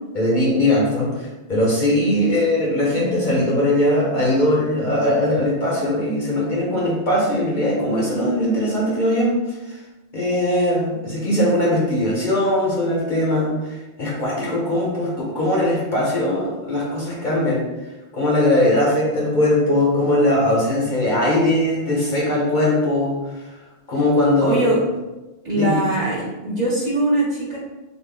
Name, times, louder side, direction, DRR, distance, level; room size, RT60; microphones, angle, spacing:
voice 1, 0.1-9.8 10.1-17.6 18.1-23.5 23.9-24.6 25.5-25.8, left 1 dB, 50° left, -4 dB, 0.8 m, -20 dB
voice 2, 24.5-24.8 25.4-27.6, right 1 dB, 40° right, -6 dB, 1.1 m, -21 dB
3.6 x 2.2 x 3.3 m, 1.0 s
omnidirectional pair, 1.1 m